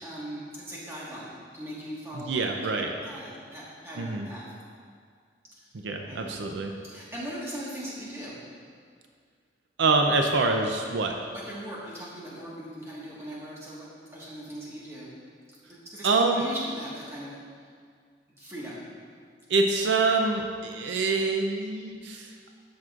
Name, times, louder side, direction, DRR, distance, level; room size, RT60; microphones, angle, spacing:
voice 1, 0.0-2.4 2.8-4.4 6.0-6.3 6.8-8.4 11.3-15.1 15.7-17.3 18.4-18.8, equal, 15° right, -7 dB, 1.5 m, -39 dB
voice 2, 2.1-2.9 4.0-4.3 5.7-6.7 9.8-11.2 16.0-16.4 19.5-22.5, right 3 dB, 75° right, 3 dB, 0.5 m, -25 dB
12.5 x 6.0 x 2.4 m, 2.1 s
head